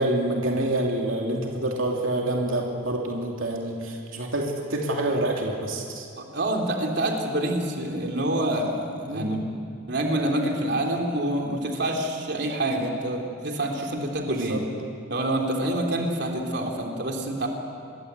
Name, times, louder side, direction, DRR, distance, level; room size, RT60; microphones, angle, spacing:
voice 1, 0.0-6.1 9.1-9.4 14.3-14.6 15.9-16.0, right 1 dB, 85° right, 0 dB, 3.0 m, -27 dB
voice 2, 6.2-9.4 9.9-14.6 15.1-17.5, right 1 dB, 55° right, 1 dB, 3.5 m, -27 dB
27.5 x 22.0 x 8.3 m, 2.4 s
head